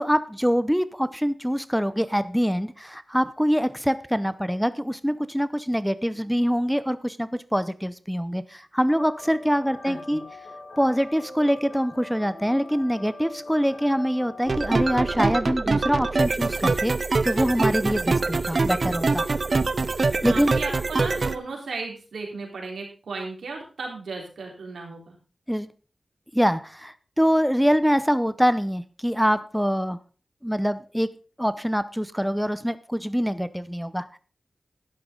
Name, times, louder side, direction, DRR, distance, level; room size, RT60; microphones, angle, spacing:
voice 1, 0.0-10.2 10.8-16.9 17.2-19.3 20.2-20.5 25.5-25.7 26.3-30.0 30.4-31.1 31.4-34.2, equal, ahead, 14 dB, 0.7 m, -24 dB
sound 1, 8.9-15.4, left 2 dB, 90° left, 6.4 m, -42 dB
voice 2, 9.8-10.2 20.2-25.2, right 3 dB, 90° right, 0 dB, 3.8 m, -35 dB
sound 2, 14.5-21.4, right 3 dB, 55° right, 0.6 m, -24 dB
12.0 x 11.0 x 3.8 m, 0.37 s
cardioid pair, 55°, 0 cm